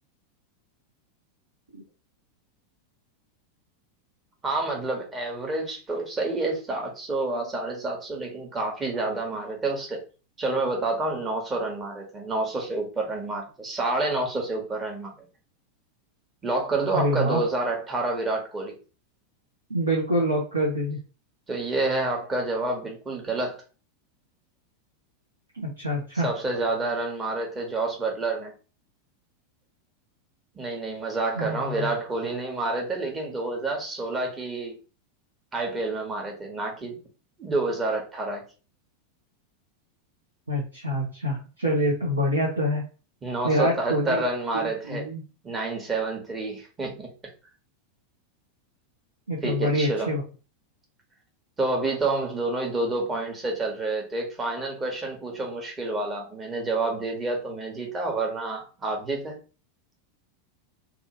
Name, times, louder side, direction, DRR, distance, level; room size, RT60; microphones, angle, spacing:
voice 1, 4.4-10.0 10.4-15.1 16.4-18.8 21.5-23.6 26.2-28.5 30.6-34.8 35.5-37.0 37.4-38.4 43.2-45.1 45.4-47.1 49.4-50.1 51.6-59.4, right 2 dB, 20° right, 0 dB, 1.1 m, -28 dB
voice 2, 16.9-17.4 19.7-21.0 25.5-26.3 31.3-31.9 40.5-42.8 43.4-44.2 44.5-45.2 49.3-50.2, equal, 85° right, -3 dB, 0.8 m, -26 dB
2.7 x 2.4 x 2.8 m, 0.34 s
figure-of-eight pair, 90°, 0 cm